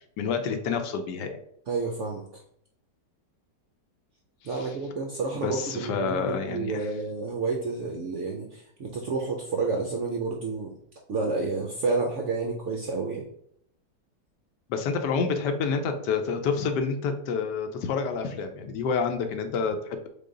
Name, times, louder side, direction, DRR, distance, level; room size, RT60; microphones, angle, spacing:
voice 1, 0.2-1.4 4.5-4.8 5.3-6.9 14.7-20.1, left 5 dB, 75° left, 6 dB, 1.2 m, -28 dB
voice 2, 1.7-2.2 4.4-10.7 11.1-13.3, right 3 dB, 70° right, 1 dB, 0.7 m, -30 dB
3.8 x 3.6 x 3.7 m, 0.68 s
omnidirectional pair, 1.9 m